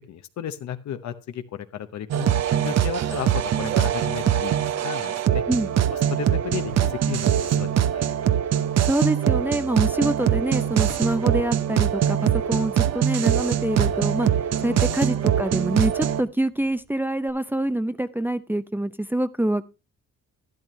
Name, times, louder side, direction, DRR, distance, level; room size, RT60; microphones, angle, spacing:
voice 1, 0.1-5.4 5.9-8.1 14.7-15.0, left 10 dB, 65° left, 9 dB, 0.9 m, -34 dB
sound 1, 2.1-16.2, right 10 dB, 60° right, 0.8 m, -23 dB
Drawer open or close, 5.3-7.7 8.0-8.1 8.6-17.3, right 4 dB, 75° right, 2.1 m, -46 dB
voice 2, 8.8-14.3 14.6-19.6, right 1 dB, 5° right, 11 dB, 0.5 m, -25 dB
12.0 x 10.5 x 3.1 m, 0.28 s
cardioid pair, 90°, 30 cm